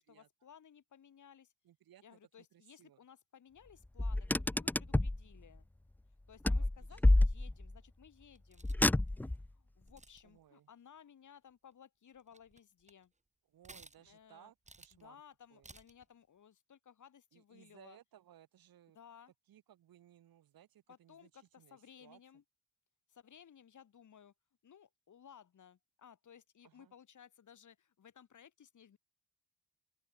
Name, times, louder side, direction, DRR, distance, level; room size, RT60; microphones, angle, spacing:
voice 1, 0.0-1.5 2.0-5.7 6.3-8.7 9.5-13.1 14.0-14.5 14.9-18.0 18.9-19.3 20.9-22.4 23.1-24.3 24.6-29.0, left 8 dB, 60° left, 4.0 m, -59 dB
voice 2, 1.6-2.2 2.5-3.0 6.6-7.2 10.2-10.7 13.5-15.2 15.5-15.7 17.3-19.0 19.5-22.2 26.6-26.9, right 11 dB, 85° right, 5.4 m, -62 dB
Car, 4.0-5.2 6.4-7.8 8.6-9.5, left 1 dB, 5° left, 0.3 m, -29 dB
sound 1, 8.3-9.1 9.8-10.4 11.7-11.8 12.2-13.0 13.6-14.2 14.6-15.1 15.6-16.1, right 3 dB, 20° right, 5.4 m, -57 dB
open air
cardioid pair, 105°, 34 cm